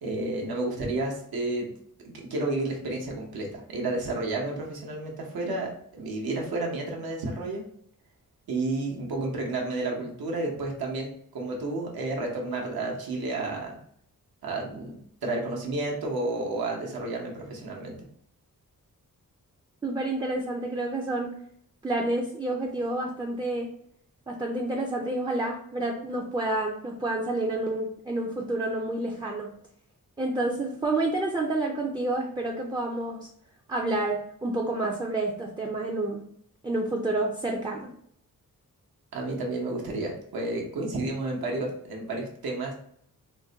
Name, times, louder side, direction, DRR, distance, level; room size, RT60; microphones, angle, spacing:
voice 1, 0.0-1.7 2.0-7.6 8.5-13.8 14.4-14.9 15.2-18.0 39.1-42.7, right 2 dB, 85° right, -1 dB, 0.9 m, -31 dB
voice 2, 19.8-21.3 21.8-23.7 24.3-29.5 30.2-33.3 33.7-36.2 36.6-37.9, right 2 dB, 15° right, -1 dB, 0.3 m, -29 dB
3.8 x 2.1 x 2.7 m, 0.66 s
wide cardioid pair, 110°, 35 cm